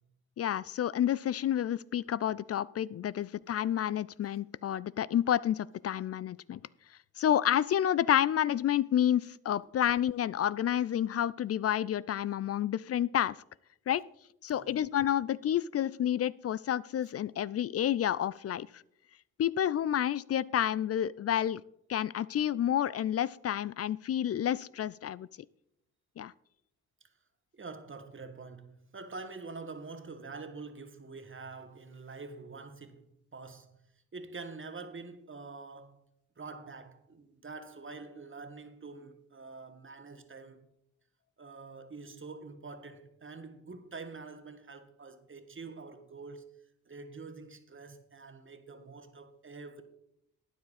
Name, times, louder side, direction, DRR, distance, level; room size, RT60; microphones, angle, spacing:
voice 1, 0.4-6.6 7.2-13.4 13.9-14.0 14.4-18.8 19.4-21.6 21.9-25.3 26.2-26.3, left 10 dB, 40° left, 0.4 m, -29 dB
voice 2, 27.5-33.8 34.1-36.0 36.4-40.7 41.4-46.5 46.8-49.8, right 4 dB, 30° right, 1.6 m, -46 dB
12.5 x 9.4 x 4.2 m
hypercardioid pair, 45°, 40 cm